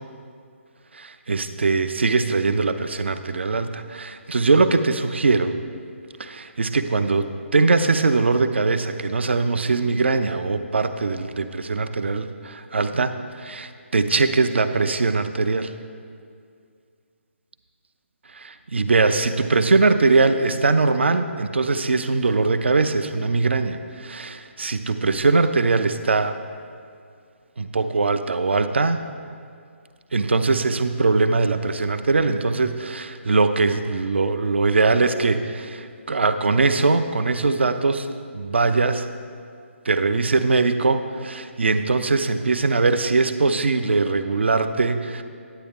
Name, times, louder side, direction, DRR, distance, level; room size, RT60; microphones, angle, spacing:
voice 1, 0.9-5.5 6.2-7.3 7.5-15.7 18.3-26.3 27.6-29.0 30.1-39.0 39.9-45.2, right 3 dB, 55° right, 10 dB, 0.5 m, -21 dB
10.0 x 8.4 x 3.5 m, 2.2 s
figure-of-eight pair, 145°, 7 cm